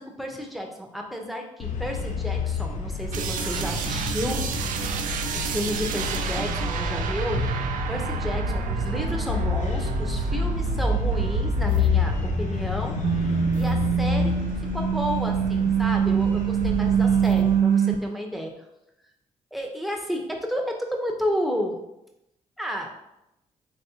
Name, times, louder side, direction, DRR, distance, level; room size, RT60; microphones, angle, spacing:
voice 1, 0.0-4.5 5.3-7.5 7.9-12.9 13.6-14.3 14.7-18.5 19.5-21.8 22.6-22.9, equal, ahead, 2 dB, 0.8 m, -31 dB
sound 1, 1.6-17.6, left 5 dB, 60° left, 0.6 m, -29 dB
sound 2, 3.1-12.7 12.9-18.0, right 7 dB, 75° right, 0.4 m, -26 dB
4.2 x 3.1 x 2.8 m, 0.86 s
supercardioid pair, 60°, 14 cm